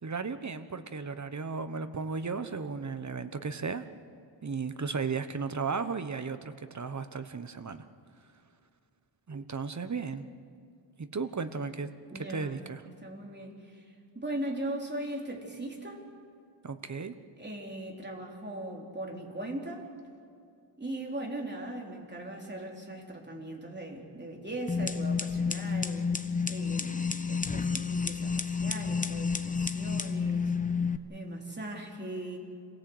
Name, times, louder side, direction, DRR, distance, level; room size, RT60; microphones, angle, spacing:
voice 1, 0.0-3.9 4.4-7.8 9.3-10.2 11.0-11.9 12.2-12.8 16.6-17.1, right 5 dB, 40° right, 10 dB, 1.1 m, -35 dB
voice 2, 12.1-12.6 13.0-16.0 17.4-19.8 20.8-26.1 26.5-30.5 31.1-32.4, right 1 dB, 25° right, 0 dB, 3.6 m, -39 dB
sound 1, 24.7-31.0, left 5 dB, 20° left, 0.9 m, -30 dB
27.0 x 17.5 x 8.0 m, 2.4 s
wide cardioid pair, 110°, 44 cm